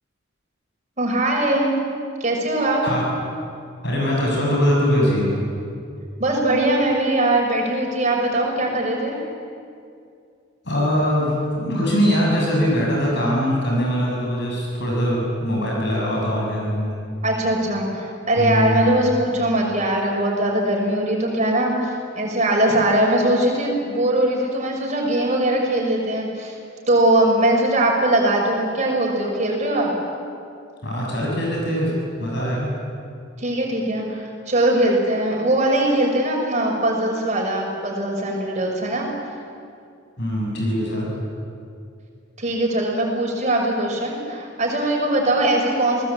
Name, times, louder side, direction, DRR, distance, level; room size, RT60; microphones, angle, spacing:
voice 1, 1.0-1.8 2.2-2.8 6.2-9.2 17.2-26.6 26.9-29.9 33.4-39.1 42.4-46.0, right 1 dB, 35° right, -1 dB, 6.0 m, -21 dB
voice 2, 3.8-5.3 10.7-17.0 18.4-18.8 30.8-31.9 32.2-32.7 40.2-41.1, equal, 55° left, -3 dB, 7.4 m, -22 dB
28.5 x 19.5 x 8.7 m, 2.4 s
head